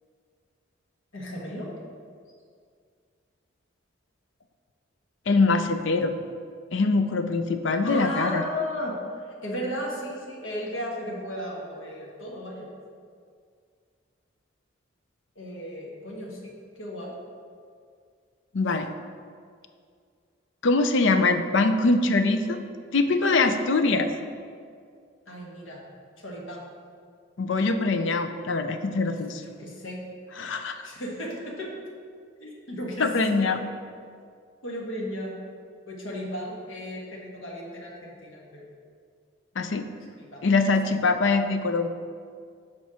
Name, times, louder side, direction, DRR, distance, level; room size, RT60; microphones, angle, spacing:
voice 1, 1.1-1.7 7.8-12.7 15.3-17.2 25.3-25.8 26.2-26.6 29.3-30.0 30.8-31.7 32.4-33.1 33.4-33.5 34.6-35.4 35.9-38.7 40.2-40.5, equal, 85° left, -3 dB, 1.4 m, -35 dB
voice 2, 5.3-6.1 6.7-8.4 18.5-18.9 20.6-22.6 22.9-24.1 27.4-29.4 30.4-30.8 33.0-33.6 39.6-39.9 40.4-41.9, left 3 dB, 70° left, 8 dB, 0.5 m, -23 dB
7.1 x 4.5 x 6.2 m, 2.2 s
head